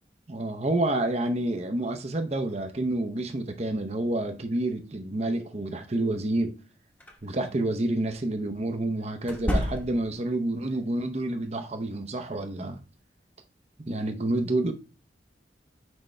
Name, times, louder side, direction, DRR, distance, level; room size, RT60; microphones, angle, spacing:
voice 1, 0.3-6.5 7.2-12.8 13.8-14.7, right 2 dB, 35° right, 0.7 m, -28 dB
sound 1, 7.0-7.2 9.2-10.2, equal, 10° left, 1.0 m, -29 dB
6.2 x 5.0 x 3.2 m
head